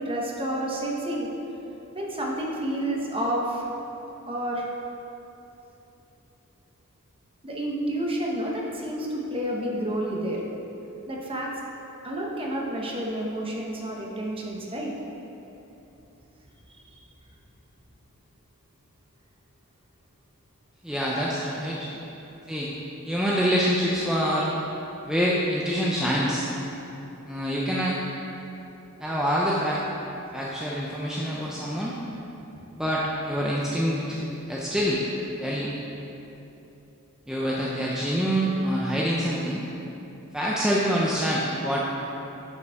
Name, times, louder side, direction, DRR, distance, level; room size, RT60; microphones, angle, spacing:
voice 1, 0.0-1.3 1.9-3.6 4.3-4.7 7.4-10.4 11.1-11.5 12.0-14.9 16.7-16.8, right 1 dB, 25° right, -2 dB, 1.0 m, -29 dB
voice 2, 20.8-21.8 22.5-22.7 23.0-24.5 25.0-26.5 27.3-28.0 29.0-29.8 30.3-31.9 32.8-34.2 34.5-35.0 35.4-35.7 37.3-39.6 40.3-41.8, equal, 5° right, -6 dB, 0.6 m, -26 dB
11.0 x 5.5 x 3.5 m, 3.0 s
head